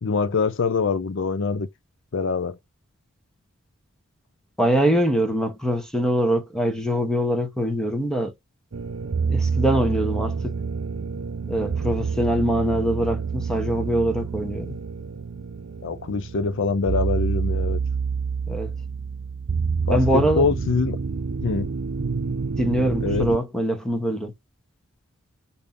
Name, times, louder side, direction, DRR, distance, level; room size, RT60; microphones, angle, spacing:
voice 1, 0.0-1.7 2.1-2.6 15.8-17.8 19.9-21.0 21.4-21.7 23.0-23.3, left 4 dB, 60° left, 0.5 m, -24 dB
voice 2, 4.6-8.3 9.3-10.6 11.5-14.8 18.5-18.7 19.9-20.5 22.6-24.3, equal, 5° left, 1.0 m, -23 dB
sound 1, 8.7-23.4, right 5 dB, 60° right, 0.5 m, -28 dB
5.1 x 2.8 x 3.6 m
head